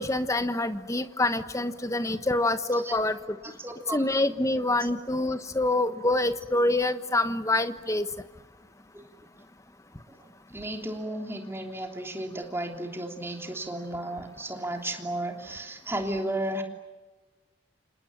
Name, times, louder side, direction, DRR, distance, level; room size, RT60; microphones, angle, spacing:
voice 1, 0.0-3.2 3.9-8.1, left 2 dB, 15° left, 10 dB, 1.2 m, -26 dB
voice 2, 3.4-4.0 4.8-5.0 8.9-9.0 10.1-10.2 10.5-16.6, right 1 dB, 10° right, 3 dB, 3.2 m, -34 dB
29.5 x 27.5 x 7.4 m, 1.2 s
head